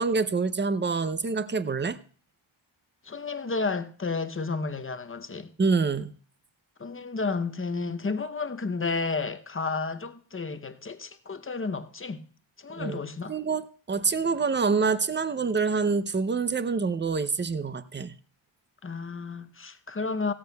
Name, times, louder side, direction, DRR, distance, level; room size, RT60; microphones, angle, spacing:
voice 1, 0.0-2.0 5.6-6.1 12.8-13.0 13.3-18.2, right 4 dB, 25° right, 0.5 m, -26 dB
voice 2, 3.0-5.5 6.8-12.2 12.6-13.4 18.8-20.3, left 4 dB, 25° left, 0.7 m, -32 dB
16.5 x 13.5 x 2.3 m
wide cardioid pair, 115°, 50 cm